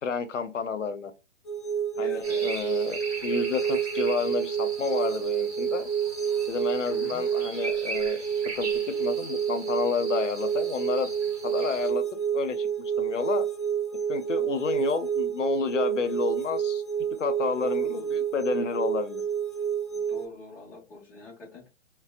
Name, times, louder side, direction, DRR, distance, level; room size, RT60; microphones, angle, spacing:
voice 1, 0.0-1.1 2.0-5.9 6.5-8.2 8.6-8.7 9.0-11.1 11.4-12.0 12.3-13.4 14.1-16.8 17.2-19.2, left 6 dB, 75° left, 0.6 m, -30 dB
sound 1, 1.5-20.3, right 8 dB, 45° left, 0.8 m, -29 dB
voice 2, 1.9-2.6 6.9-7.2 17.6-18.1 19.9-21.7, left 2 dB, 5° left, 0.5 m, -43 dB
sound 2, 2.2-11.9, right 2 dB, 30° right, 1.0 m, -40 dB
2.7 x 2.0 x 2.3 m
figure-of-eight pair, 130°, 37 cm